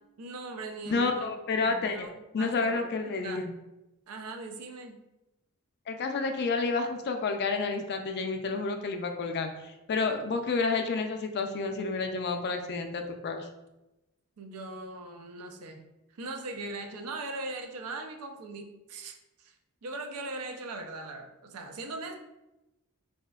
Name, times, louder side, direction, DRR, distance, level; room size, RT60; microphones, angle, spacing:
voice 1, 0.2-1.4 1.7-2.1 2.4-2.9 3.2-3.4 4.1-5.0 14.4-15.8 16.1-19.5 19.8-22.2, right 2 dB, 80° right, 4 dB, 0.5 m, -40 dB
voice 2, 0.9-2.1 2.3-3.5 5.9-13.5, left 4 dB, 50° left, 5 dB, 0.4 m, -30 dB
4.1 x 2.8 x 2.3 m, 0.97 s
head